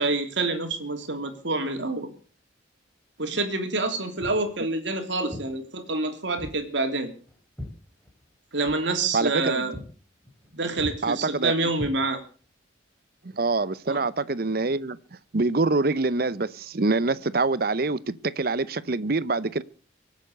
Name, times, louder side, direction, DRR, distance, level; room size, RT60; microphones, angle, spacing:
voice 1, 0.0-2.1 3.2-7.1 8.5-9.7 10.5-12.2 13.9-14.0, right 3 dB, 70° right, 3.2 m, -27 dB
Walk footsteps, 4.2-4.5 5.3-5.5 6.4-6.6 6.9-8.4 8.6-8.8 9.2-9.4 9.7-9.9 10.2-10.5 10.8-11.0 11.7-12.4, left 1 dB, 5° left, 3.5 m, -39 dB
voice 2, 9.1-9.6 11.0-11.5 13.3-15.0 15.3-19.6, right 3 dB, 50° right, 0.7 m, -25 dB
24.5 x 8.2 x 6.6 m
head